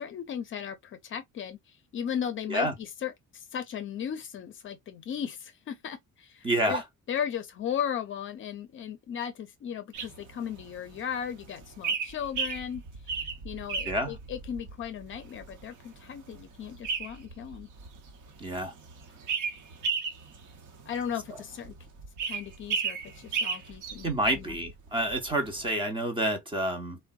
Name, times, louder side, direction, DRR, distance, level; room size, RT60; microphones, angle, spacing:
voice 1, 0.0-6.8 7.1-17.7 20.9-21.7 22.2-24.6, left 8 dB, 40° left, 0.5 m, -36 dB
voice 2, 6.4-6.8 13.9-14.1 18.4-18.7 24.0-27.0, right 1 dB, 15° right, 0.5 m, -28 dB
sound 1, 9.9-25.7, right 5 dB, 75° right, 0.9 m, -36 dB
3.6 x 2.1 x 2.2 m
cardioid pair, 180°, 30 cm